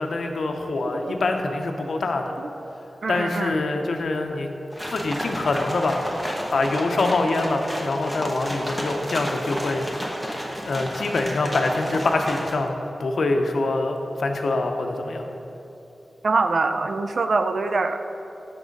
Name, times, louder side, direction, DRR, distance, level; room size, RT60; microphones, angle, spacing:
voice 1, 0.0-2.2 3.1-4.5 4.9-6.0 6.5-9.9 10.6-15.3, left 2 dB, 70° left, 4 dB, 0.6 m, -24 dB
voice 2, 3.0-3.6 16.2-18.0, right 3 dB, 60° right, 8 dB, 0.4 m, -23 dB
sound 1, 4.7-12.5, equal, 5° right, 0.9 m, -32 dB
6.2 x 6.0 x 5.2 m, 2.9 s
wide cardioid pair, 135°, 0 cm